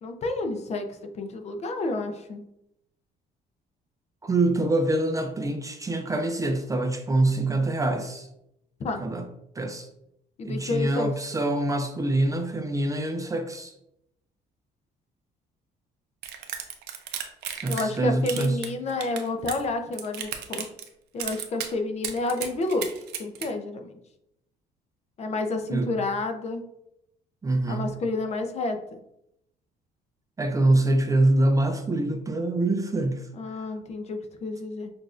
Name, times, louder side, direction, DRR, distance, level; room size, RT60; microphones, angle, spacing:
voice 1, 0.0-0.9 1.1-2.4 8.8-9.0 10.4-11.1 17.7-20.7 21.1-22.9 23.2-23.9 25.2-26.6 27.7-28.8 33.3-34.9, left 2 dB, 40° left, 6 dB, 0.6 m, -30 dB
voice 2, 4.2-8.3 9.0-9.3 9.6-9.9 10.4-13.7 17.6-18.6 25.7-25.9 27.4-27.9 30.4-33.7, right 2 dB, 20° right, 6 dB, 0.4 m, -25 dB
sound 1, 16.2-18.0 18.3-19.6 19.9-20.9 21.2-21.7 22.0-23.5, right 9 dB, 75° right, 0.6 m, -34 dB
6.1 x 2.5 x 2.4 m, 0.81 s
cardioid pair, 110°, 17 cm